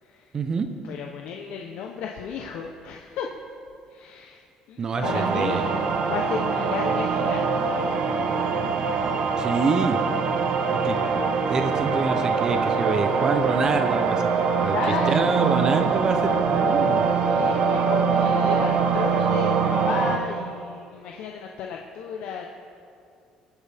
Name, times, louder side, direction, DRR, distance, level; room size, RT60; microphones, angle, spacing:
voice 1, 0.3-0.7 4.8-5.7 9.4-10.0 10.7-14.3 14.6-14.8 15.1-17.0, right 4 dB, 30° right, 7 dB, 0.7 m, -26 dB
voice 2, 0.8-3.3 3.9-4.4 4.7-5.7 6.0-9.2 14.7-15.4 17.2-22.5, left 6 dB, 75° left, 1 dB, 0.8 m, -34 dB
sound 1, 5.0-20.2, right 5 dB, 55° right, 1.0 m, -23 dB
21.0 x 9.3 x 3.5 m, 2.4 s
cardioid pair, 140°, 2 cm